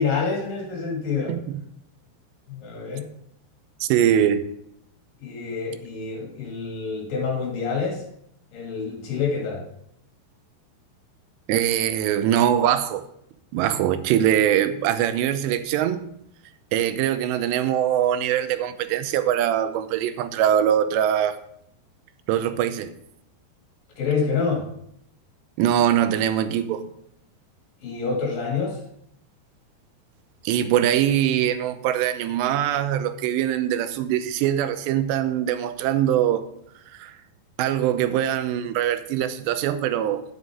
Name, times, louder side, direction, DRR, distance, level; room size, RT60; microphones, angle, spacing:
voice 1, 0.0-1.4 2.5-3.1 5.2-8.0 8.5-9.6 24.0-24.7 27.8-28.8, left 5 dB, 60° left, 3.8 m, -27 dB
voice 2, 1.3-1.6 3.8-4.5 11.5-13.0 13.5-16.0 16.7-21.4 22.3-22.9 25.6-26.8 30.5-36.5 36.9-37.1 37.6-40.2, right 10 dB, 90° right, 2.9 m, -22 dB
9.8 x 9.5 x 3.6 m
omnidirectional pair, 4.8 m